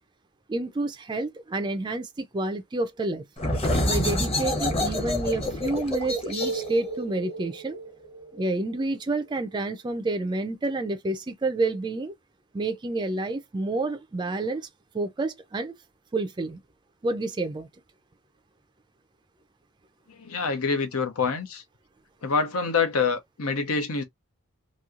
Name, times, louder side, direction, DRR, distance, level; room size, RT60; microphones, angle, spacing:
voice 1, 0.5-3.2 3.8-7.8 8.3-12.1 12.5-14.7 14.9-15.7 16.1-16.6 17.0-17.7, right 2 dB, 20° right, 0.4 m, -29 dB
sound 1, 3.4-8.8, left 1 dB, 25° left, 0.8 m, -28 dB
voice 2, 20.2-21.6 22.2-24.0, left 4 dB, 90° left, 0.8 m, -26 dB
3.0 x 2.7 x 2.4 m
head